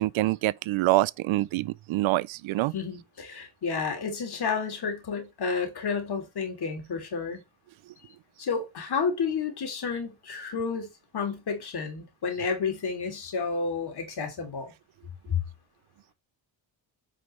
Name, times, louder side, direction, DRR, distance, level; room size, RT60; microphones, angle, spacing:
voice 1, 0.0-2.7, right 17 dB, 75° right, 0.5 m, -25 dB
voice 2, 2.7-7.4 8.4-14.7 15.3-15.4, left 5 dB, 55° left, 3.1 m, -31 dB
9.2 x 5.1 x 3.2 m
cardioid pair, 100°, 48 cm